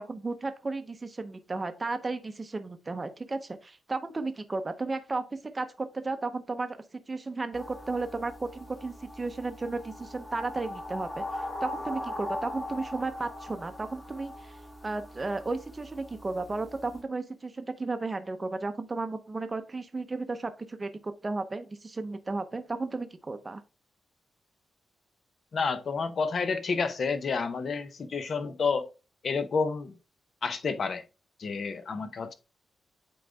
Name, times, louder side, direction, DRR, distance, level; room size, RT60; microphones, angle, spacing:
voice 1, 0.0-14.6 14.8-23.6, right 3 dB, 20° right, 0.7 m, -34 dB
sound 1, 7.5-17.0, left 1 dB, 20° left, 1.7 m, -40 dB
voice 2, 25.5-28.9 29.2-29.9 30.4-31.0 31.4-32.3, left 5 dB, 45° left, 0.8 m, -30 dB
8.8 x 3.9 x 3.3 m
wide cardioid pair, 150°, 0 cm